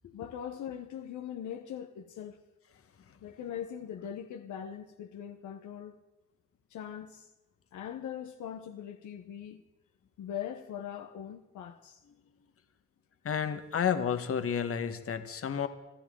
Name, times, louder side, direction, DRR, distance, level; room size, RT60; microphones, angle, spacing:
voice 1, 0.1-2.4 3.2-6.0 6.7-7.3 7.7-9.6 10.2-12.0, left 9 dB, 75° left, 1.1 m, -41 dB
voice 2, 13.2-15.7, left 8 dB, 50° left, 1.5 m, -31 dB
26.0 x 13.0 x 3.8 m
cardioid pair, 90°, 30 cm